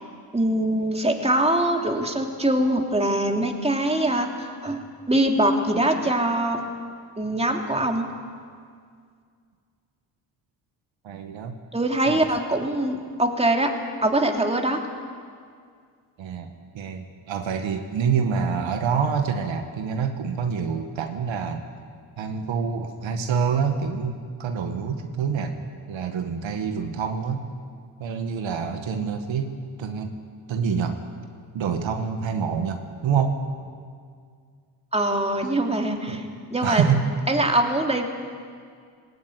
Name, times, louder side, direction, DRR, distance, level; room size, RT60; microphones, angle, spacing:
voice 1, 0.3-4.8 5.1-6.6 7.2-8.0 11.7-13.7 14.0-14.8 34.9-36.2 36.5-36.8 37.3-38.1, right 1 dB, 15° right, 2 dB, 3.2 m, -23 dB
voice 2, 11.0-11.6 12.1-12.2 16.2-21.7 22.2-25.6 25.9-27.5 28.0-29.5 29.8-30.1 30.5-31.0 31.5-33.4 36.1-36.2 36.6-37.1, right 6 dB, 70° right, 5 dB, 1.9 m, -26 dB
18.5 x 18.5 x 9.5 m, 2.1 s
cardioid pair, 75°, 47 cm